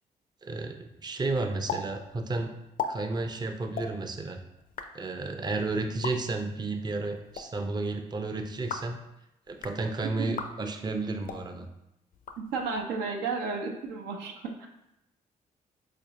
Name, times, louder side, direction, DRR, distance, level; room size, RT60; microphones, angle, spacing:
voice 1, 0.4-2.5 2.9-4.4 4.9-9.0 9.5-11.7, right 3 dB, 25° right, 5 dB, 0.4 m, -32 dB
sound 1, 1.7-1.8 2.1-2.2 2.6-2.9 3.7-3.9 4.6-4.9 5.9-6.1 7.1-7.4 8.5-8.9 9.5-9.8 10.3-10.5 11.2-11.4 12.1-12.8, left 6 dB, 55° left, 0.4 m, -36 dB
voice 2, 12.4-14.7, right 4 dB, 85° right, 2 dB, 0.5 m, -33 dB
4.1 x 2.5 x 2.8 m, 0.85 s
supercardioid pair, 50°, 17 cm